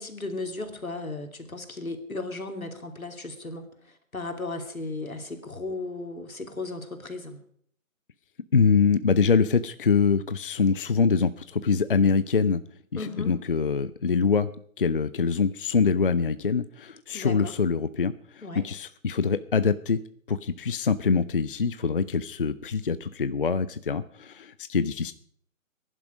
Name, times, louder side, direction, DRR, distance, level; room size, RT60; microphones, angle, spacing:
voice 1, 0.0-7.4 12.9-13.3 17.1-17.6 18.4-18.6, left 3 dB, 80° left, 5 dB, 3.0 m, -35 dB
voice 2, 8.5-12.6 12.9-14.5 14.8-20.0 20.3-25.1, left 5 dB, 40° left, 14 dB, 0.5 m, -24 dB
19.5 x 11.0 x 5.1 m, 0.62 s
figure-of-eight pair, 145°, 41 cm